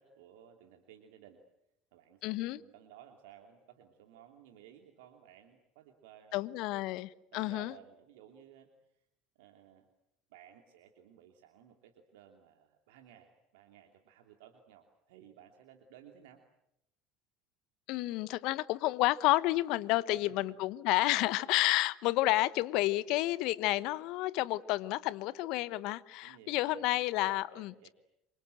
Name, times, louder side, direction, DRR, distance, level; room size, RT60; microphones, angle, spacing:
voice 1, 0.0-1.4 1.9-6.4 7.3-9.0 9.4-9.9 10.3-16.4 20.1-20.6 26.2-26.9 27.2-27.9, right 10 dB, 70° right, 4 dB, 2.8 m, -57 dB
voice 2, 2.2-2.6 6.3-7.7 17.9-27.9, left 18 dB, 60° left, 17 dB, 1.1 m, -30 dB
28.0 x 25.0 x 7.9 m, 0.81 s
figure-of-eight pair, 70°, 0 cm